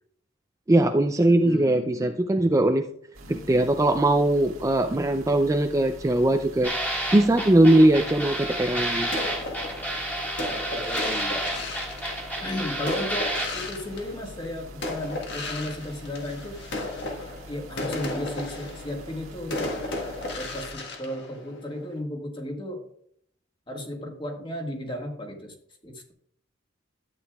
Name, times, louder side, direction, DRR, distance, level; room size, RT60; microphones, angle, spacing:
voice 1, 0.7-2.9 3.3-9.1, right 1 dB, 15° right, 6 dB, 0.4 m, -20 dB
voice 2, 1.3-2.2 3.2-3.7 7.1-7.4 10.7-11.6 12.4-16.6 17.5-19.7 20.3-22.8 23.7-25.5 25.8-26.1, left 1 dB, 25° left, 2 dB, 1.7 m, -35 dB
sound 1, 3.1-20.7, equal, 85° right, 1.9 m, -45 dB
sound 2, 6.6-13.5, right 1 dB, 10° left, 1.8 m, -30 dB
sound 3, 9.1-14.5 14.8-22.0, left 2 dB, 60° left, 1.6 m, -35 dB
12.5 x 8.6 x 2.3 m, 0.66 s
head